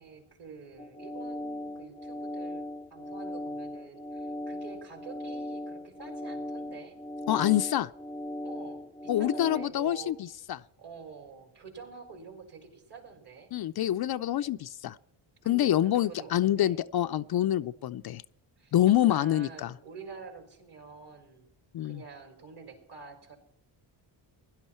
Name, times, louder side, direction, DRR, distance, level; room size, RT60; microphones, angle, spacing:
voice 1, 0.0-7.0 8.4-10.2 10.8-13.5 15.4-16.8 17.5-18.0 18.6-21.5 21.8-23.4, right 5 dB, 50° right, 4.6 m, -48 dB
sound 1, 0.8-9.7, left 1 dB, 5° left, 0.5 m, -38 dB
voice 2, 7.3-7.9 9.1-10.6 13.5-15.0 15.5-18.2 18.7-19.7 21.7-22.0, left 12 dB, 50° left, 0.5 m, -26 dB
16.5 x 11.5 x 4.4 m
cardioid pair, 90°, 49 cm